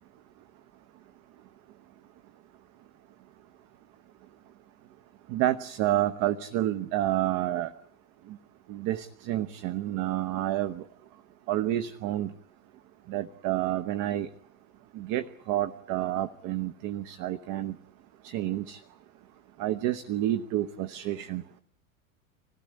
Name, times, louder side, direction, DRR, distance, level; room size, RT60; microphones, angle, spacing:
voice 1, 5.3-7.7 8.7-10.8 11.5-12.3 13.1-14.3 14.9-17.8 18.2-18.8 19.6-21.4, right 13 dB, 50° right, 12 dB, 1.0 m, -29 dB
26.5 x 17.0 x 9.6 m, 0.70 s
hypercardioid pair, 80°, 41 cm